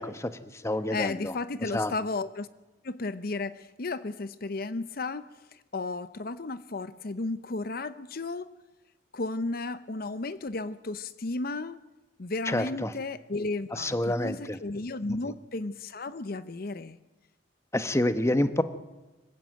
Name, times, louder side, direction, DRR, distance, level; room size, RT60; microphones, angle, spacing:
voice 1, 0.0-1.3 1.7-1.9 12.5-12.9 13.7-14.6 15.1-15.3 17.7-18.6, left 1 dB, 15° left, 11 dB, 1.1 m, -28 dB
voice 2, 0.9-2.5 2.8-8.5 9.1-11.8 12.2-17.0, left 3 dB, 55° left, 14 dB, 0.7 m, -34 dB
25.5 x 16.0 x 9.0 m, 1.1 s
head